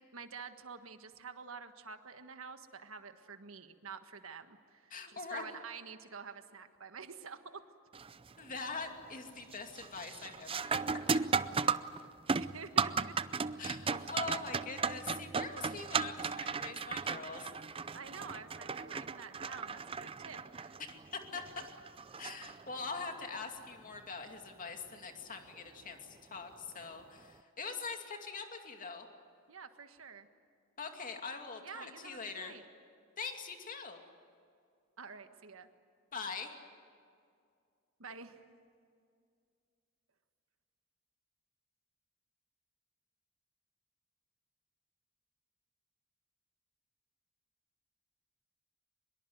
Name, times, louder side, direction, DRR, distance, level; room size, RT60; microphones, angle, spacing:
voice 1, 0.1-7.6 12.4-13.2 14.0-14.1 17.9-20.8 29.5-30.3 31.6-32.6 35.0-35.7 38.0-38.4, right 5 dB, 70° right, 8 dB, 1.6 m, -48 dB
voice 2, 4.9-5.5 8.4-10.8 13.6-17.9 20.8-21.4 22.2-29.1 30.8-32.6 33.2-34.0 36.1-36.5, left 4 dB, 40° left, 4 dB, 2.5 m, -43 dB
sound 1, 7.9-8.3 8.7-9.2 9.5-23.0 25.5-25.6 26.5-26.7, right 5 dB, 25° right, 0.5 m, -36 dB
24.0 x 22.0 x 9.4 m, 2.3 s
head